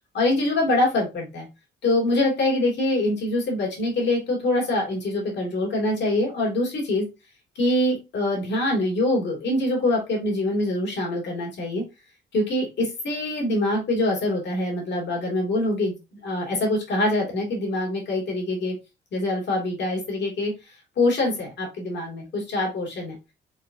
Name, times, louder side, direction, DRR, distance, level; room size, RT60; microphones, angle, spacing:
voice 1, 0.1-1.5 1.8-7.0 7.6-11.8 12.3-15.9 16.2-18.7 19.1-20.5 21.0-23.2, left 1 dB, 60° left, -1 dB, 2.5 m, -24 dB
4.7 x 3.8 x 2.7 m, 0.26 s
cardioid pair, 90°, 20 cm